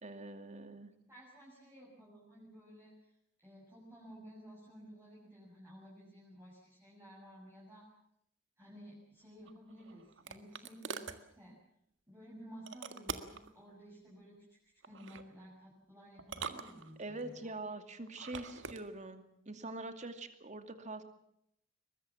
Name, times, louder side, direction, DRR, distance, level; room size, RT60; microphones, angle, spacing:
voice 1, 0.0-0.9 17.0-21.0, right 2 dB, 40° right, 8 dB, 2.5 m, -44 dB
voice 2, 1.1-3.1 3.4-7.8 8.6-11.6 12.1-14.6 14.8-17.6, equal, 15° right, -7 dB, 7.2 m, -54 dB
sound 1, 9.5-11.2 12.7-13.5 14.8-15.3 16.2-17.2 18.1-18.8, right 5 dB, 65° right, 1.7 m, -44 dB
23.0 x 21.0 x 7.3 m, 0.73 s
head